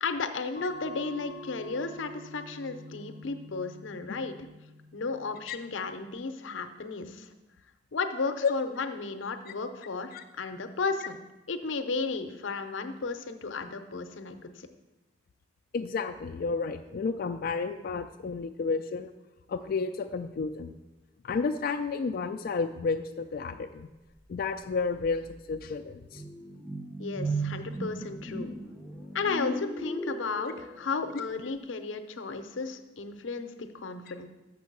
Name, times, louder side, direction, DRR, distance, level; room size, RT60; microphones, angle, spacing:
voice 1, 0.0-4.3 4.9-7.3 7.9-11.2 11.5-14.5 27.0-28.6 29.1-34.3, left 4 dB, 90° left, 8 dB, 0.7 m, -34 dB
sound 1, 0.6-5.7, equal, 50° right, 1.6 m, -47 dB
voice 2, 15.7-19.1 19.5-20.7 21.2-23.9 24.3-26.2, left 4 dB, 50° left, 5 dB, 0.3 m, -31 dB
sound 2, 24.5-24.6 25.0-31.1, right 2 dB, 15° right, 0.8 m, -37 dB
6.6 x 6.2 x 5.9 m, 1.1 s
head